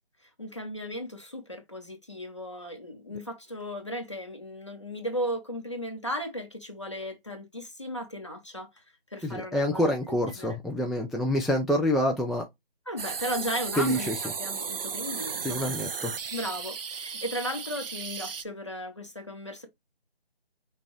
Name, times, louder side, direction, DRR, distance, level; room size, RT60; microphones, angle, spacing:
voice 1, 0.4-8.7 9.1-10.6 12.9-15.7 16.3-19.7, equal, 30° left, 0.9 m, -36 dB
voice 2, 9.2-12.4 13.8-14.2 15.4-16.1, equal, ahead, 0.3 m, -27 dB
sound 1, 13.0-18.4, right 6 dB, 65° right, 0.4 m, -35 dB
5.8 x 2.3 x 3.0 m
figure-of-eight pair, 175°, 31 cm